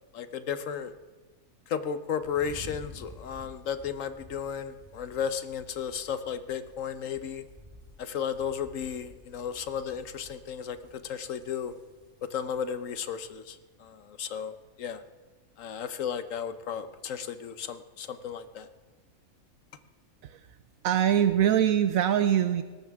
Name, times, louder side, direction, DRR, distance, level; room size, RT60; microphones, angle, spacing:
voice 1, 0.1-0.9 1.7-7.4 8.0-11.7 12.2-15.0 15.6-18.7, left 7 dB, 65° left, 11 dB, 1.2 m, -34 dB
sound 1, 2.2-13.4, left 1 dB, 5° left, 5.1 m, -52 dB
voice 2, 20.8-22.6, right 10 dB, 75° right, 10 dB, 1.1 m, -23 dB
20.0 x 18.5 x 3.6 m, 1.3 s
omnidirectional pair, 1.5 m